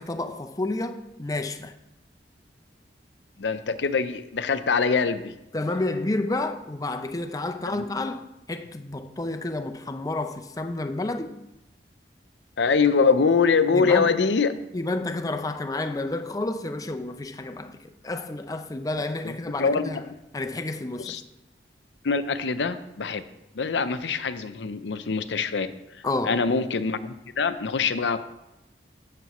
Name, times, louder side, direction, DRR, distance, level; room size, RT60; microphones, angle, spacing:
voice 1, 0.0-1.7 5.5-11.3 13.7-14.1 14.7-20.1 20.3-21.2 26.0-26.4, left 2 dB, 20° left, 0.5 m, -30 dB
voice 2, 3.4-5.3 7.7-7.9 12.6-14.5 19.2-19.3 19.6-20.1 21.0-21.2 22.0-23.2 23.5-25.7 26.2-28.2, left 5 dB, 90° left, 0.6 m, -24 dB
16.5 x 6.8 x 3.0 m
head